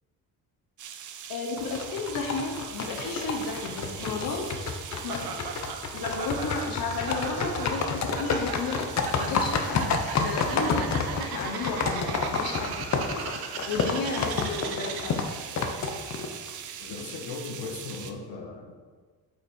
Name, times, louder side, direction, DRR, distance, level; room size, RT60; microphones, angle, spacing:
sound 1, 0.8-18.1, right 8 dB, 50° right, 0.7 m, -42 dB
voice 1, 1.3-5.5 5.9-8.8 9.2-12.8 13.1-13.2 13.7-15.2, left 4 dB, 65° left, 1 dB, 1.2 m, -33 dB
sound 2, 1.6-16.5, left 4 dB, 45° left, 0.8 m, -30 dB
voice 2, 4.0-4.6 13.8-14.0 16.8-18.7, left 4 dB, 90° left, 1 dB, 1.4 m, -39 dB
Laughter, 5.1-15.3, right 6 dB, 75° right, 1.0 m, -38 dB
8.6 x 5.5 x 4.4 m, 1.5 s
cardioid pair, 125°, 38 cm